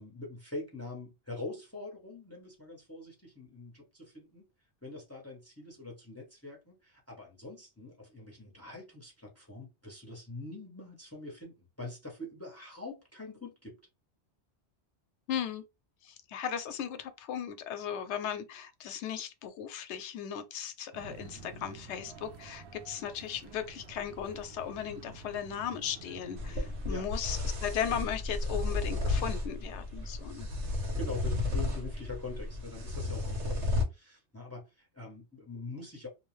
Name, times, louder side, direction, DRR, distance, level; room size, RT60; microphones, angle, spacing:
voice 1, 0.0-4.5 4.8-13.8 26.9-27.1 30.9-36.1, left 2 dB, 15° left, 0.7 m, -44 dB
voice 2, 15.3-15.6 16.0-30.5, left 8 dB, 85° left, 0.9 m, -37 dB
sound 1, 20.9-27.0, right 3 dB, 70° right, 0.8 m, -49 dB
sound 2, 26.4-33.8, left 2 dB, 90° right, 1.2 m, -33 dB
2.6 x 2.0 x 3.1 m
omnidirectional pair, 1.2 m